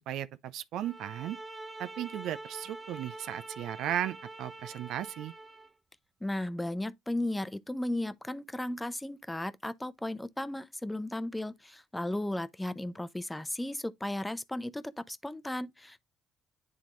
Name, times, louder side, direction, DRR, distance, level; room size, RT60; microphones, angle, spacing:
voice 1, 0.0-1.4 1.8-5.3, right 11 dB, 75° right, 0.5 m, -36 dB
sound 1, 0.8-5.7, right 2 dB, 15° right, 1.1 m, -45 dB
voice 2, 6.2-16.0, left 1 dB, 10° left, 0.7 m, -35 dB
9.7 x 3.6 x 3.0 m
supercardioid pair, 80°, 0 cm